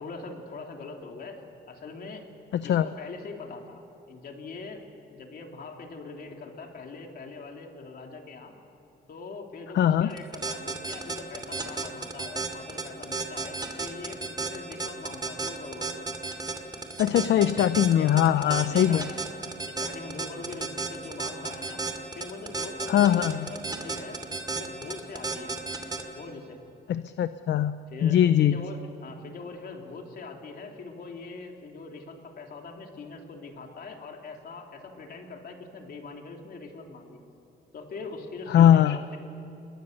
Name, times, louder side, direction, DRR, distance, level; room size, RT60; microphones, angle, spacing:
voice 1, 0.0-2.3 2.6-3.8 4.1-4.8 5.1-8.5 9.1-15.9 17.3-17.6 18.0-18.2 18.6-19.1 19.7-21.8 22.1-24.2 24.5-25.6 26.0-26.6 27.9-37.2 37.7-39.2, left 4 dB, 55° left, 2 dB, 3.2 m, -42 dB
voice 2, 2.5-2.9 9.7-10.1 17.0-19.0 22.9-23.5 26.9-27.7 28.0-28.6 38.5-39.0, left 10 dB, 70° left, 12 dB, 0.7 m, -21 dB
sound 1, 10.1-26.0, right 3 dB, 20° right, 2.7 m, -32 dB
29.0 x 22.0 x 6.7 m, 2.9 s
cardioid pair, 145°, 19 cm